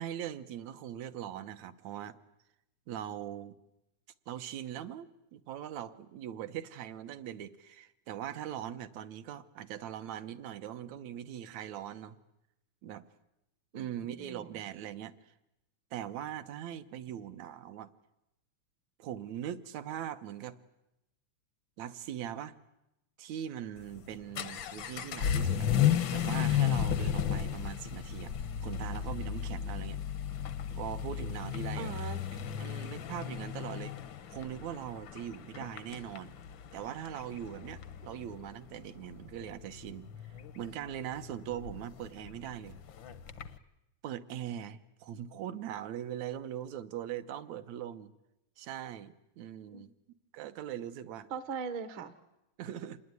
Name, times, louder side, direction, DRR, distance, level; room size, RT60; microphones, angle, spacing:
voice 1, 0.0-2.2 2.9-3.6 4.3-12.2 12.8-13.1 13.7-15.3 15.9-17.9 19.0-20.6 21.8-22.5 23.2-25.7 26.1-28.3 28.6-30.0 30.7-31.9 32.6-33.9 34.3-36.3 36.7-40.1 40.6-42.8 44.0-48.1 48.6-49.9 50.3-51.3 52.6-53.0, right 10 dB, 70° right, 11 dB, 2.2 m, -41 dB
voice 2, 14.2-14.6 31.8-32.2 49.7-49.9 51.3-52.1, right 5 dB, 55° right, 12 dB, 1.7 m, -40 dB
Vehicle / Accelerating revving vroom, 23.8-43.6, left 9 dB, 60° left, 1.2 m, -34 dB
27.0 x 20.0 x 9.6 m, 0.90 s
omnidirectional pair, 3.5 m